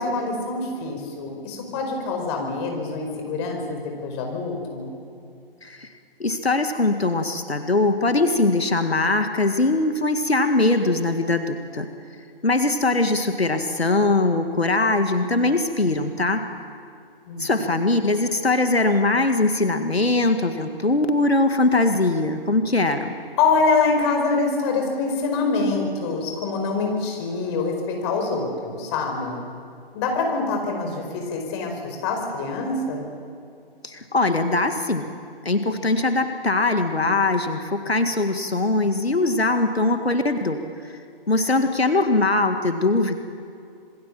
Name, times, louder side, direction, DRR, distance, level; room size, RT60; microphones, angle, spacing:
voice 1, 0.0-4.9 17.3-17.8 23.4-29.4 29.9-33.1, left 4 dB, 25° left, 3 dB, 5.0 m, -25 dB
voice 2, 6.2-11.9 12.4-16.4 17.4-23.1 33.8-35.1 35.4-41.0 41.3-43.2, left 2 dB, 90° left, 7 dB, 2.0 m, -21 dB
27.0 x 22.5 x 7.6 m, 2.5 s
figure-of-eight pair, 140°, 30 cm